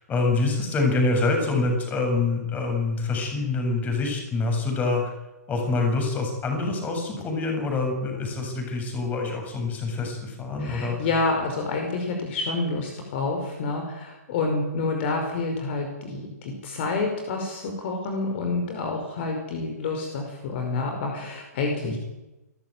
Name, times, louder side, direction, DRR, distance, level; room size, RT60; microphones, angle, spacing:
voice 1, 0.0-5.1 5.5-11.0 21.8-22.0, left 3 dB, 15° left, 3 dB, 7.5 m, -26 dB
voice 2, 10.6-22.0, left 3 dB, 40° left, 3 dB, 5.4 m, -28 dB
28.0 x 14.5 x 9.2 m, 1.0 s
figure-of-eight pair, 125°, 9 cm